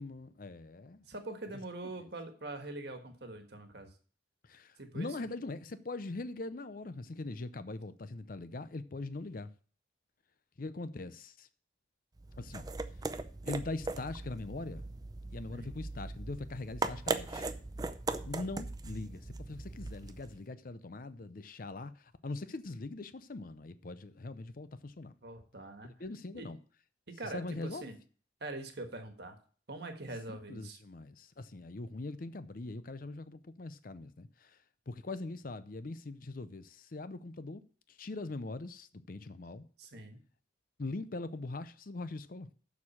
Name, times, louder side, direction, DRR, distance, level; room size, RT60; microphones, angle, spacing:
voice 1, 0.0-1.1 2.0-2.1 4.4-9.5 10.6-11.5 12.4-12.7 13.5-14.8 15.3-17.5 18.3-25.1 26.0-26.6 27.2-27.9 30.3-34.6 34.9-37.6 37.9-39.7 40.8-42.5, left 2 dB, 45° left, 0.6 m, -42 dB
voice 2, 1.1-3.9 4.8-5.1 15.5-15.7 25.2-25.9 26.3-26.5 27.2-27.9 28.4-29.4 29.7-30.8 39.8-40.2, right 2 dB, 55° right, 1.6 m, -43 dB
sound 1, 12.2-20.4, right 3 dB, 20° right, 0.5 m, -39 dB
7.2 x 6.4 x 7.2 m
head